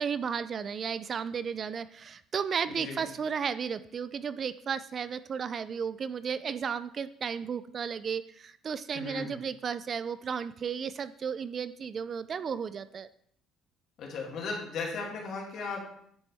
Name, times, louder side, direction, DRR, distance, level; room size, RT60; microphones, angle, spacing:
voice 1, 0.0-13.1, right 6 dB, 35° right, 14 dB, 0.3 m, -34 dB
voice 2, 2.7-3.0 8.9-9.4 14.0-16.0, left 4 dB, 60° left, -1 dB, 2.4 m, -36 dB
9.7 x 6.1 x 3.4 m, 0.67 s
cardioid pair, 135°, 0 cm